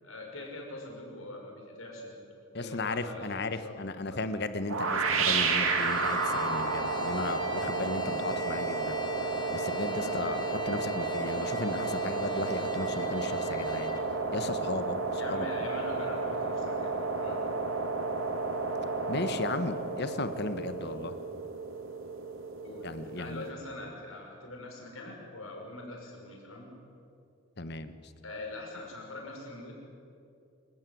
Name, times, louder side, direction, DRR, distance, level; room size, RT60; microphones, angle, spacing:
voice 1, 0.0-4.2 10.0-10.2 15.1-17.4 22.6-26.7 28.2-29.7, left 2 dB, 85° left, 0 dB, 6.0 m, -43 dB
voice 2, 2.5-13.9 14.3-15.4 19.1-21.1 22.8-23.5 27.6-27.9, left 2 dB, 55° left, 11 dB, 1.2 m, -35 dB
sound 1, 4.7-23.5, right 3 dB, 80° right, 2.4 m, -32 dB
Trumpet, 5.5-14.1, left 2 dB, 20° left, 2.3 m, -44 dB
26.0 x 15.0 x 9.5 m, 2.5 s
head